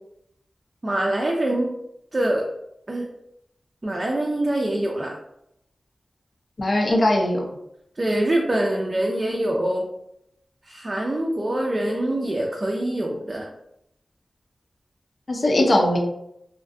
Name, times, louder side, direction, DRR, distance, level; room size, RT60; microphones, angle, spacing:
voice 1, 0.8-1.7 2.1-2.4 2.9-3.1 3.8-5.2 8.0-9.9 10.7-13.5, right 1 dB, 35° right, -1 dB, 0.4 m, -24 dB
voice 2, 6.6-7.4 15.3-16.0, left 1 dB, 55° left, 1 dB, 0.4 m, -19 dB
2.5 x 2.2 x 2.5 m, 0.78 s
wide cardioid pair, 75°, 0 cm